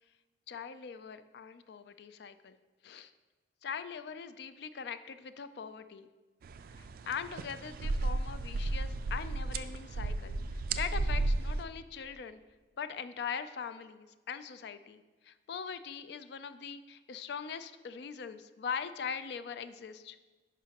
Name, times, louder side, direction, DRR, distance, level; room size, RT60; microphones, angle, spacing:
voice 1, 0.5-2.6 2.8-3.1 3.6-6.1 7.1-10.4 10.8-12.4 12.8-15.0 15.3-20.2, left 6 dB, 65° left, 11 dB, 0.4 m, -41 dB
sound 1, 6.4-11.6, right 2 dB, 55° right, 0.3 m, -34 dB
11.0 x 4.7 x 2.9 m, 1.3 s
head